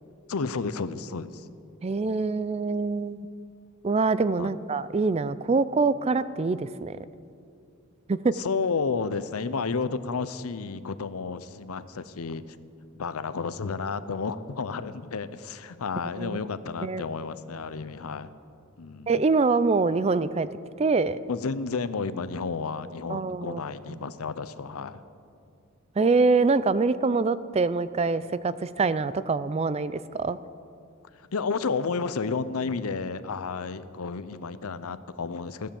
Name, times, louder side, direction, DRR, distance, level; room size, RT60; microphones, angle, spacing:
voice 1, 0.3-1.5 4.4-4.5 8.3-12.6 12.9-18.3 18.8-19.1 21.3-25.0 31.3-35.7, left 4 dB, 90° left, 14 dB, 0.6 m, -31 dB
voice 2, 1.8-3.2 3.8-7.0 8.1-8.3 16.2-16.4 16.8-17.0 19.1-20.5 20.8-21.2 23.1-23.6 26.0-30.4, right 4 dB, 30° right, 15 dB, 0.4 m, -24 dB
15.5 x 10.5 x 7.0 m, 2.4 s
head